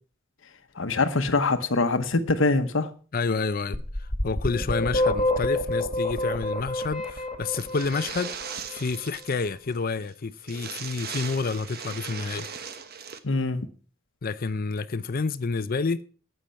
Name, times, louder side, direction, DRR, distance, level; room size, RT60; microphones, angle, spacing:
voice 1, 0.8-2.9 13.2-13.7, left 3 dB, 70° left, 1.0 m, -24 dB
voice 2, 3.1-8.3 8.7-12.5 14.2-16.0, left 4 dB, 45° left, 0.5 m, -29 dB
sound 1, 3.7-8.6, left 1 dB, 30° left, 1.9 m, -27 dB
sound 2, 7.5-9.5 9.7-9.8 10.1-10.2 10.4-13.2, right 7 dB, 50° right, 1.1 m, -38 dB
11.5 x 9.0 x 5.7 m
head